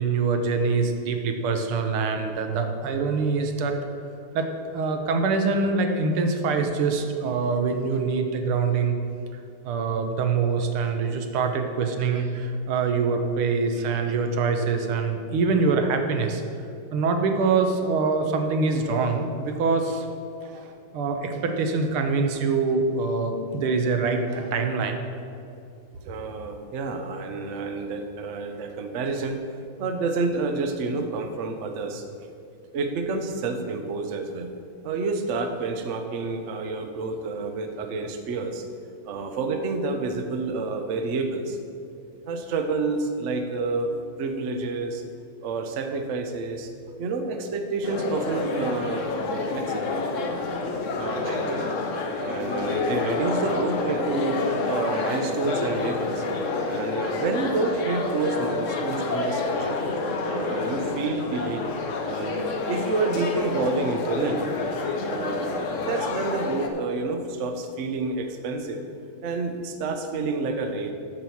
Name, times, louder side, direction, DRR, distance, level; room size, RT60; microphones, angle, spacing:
voice 1, 0.0-3.8 4.3-9.0 9.7-16.4 16.9-20.1 20.4-25.0, right 4 dB, 90° right, 5 dB, 1.8 m, -24 dB
voice 2, 26.0-29.4 29.8-32.0 32.7-34.5 34.8-38.6 39.0-41.6 42.2-43.9 44.2-45.0 45.4-46.7 47.0-50.0 51.0-51.8 52.2-54.4 54.7-56.3 56.7-59.8 60.2-61.7 62.0-64.6 65.1-65.5 65.8-68.8 69.2-70.9, right 3 dB, 70° right, 5 dB, 0.7 m, -29 dB
sound 1, 47.8-66.7, left 3 dB, 60° left, 0.8 m, -28 dB
7.4 x 6.0 x 7.1 m, 2.5 s
omnidirectional pair, 2.3 m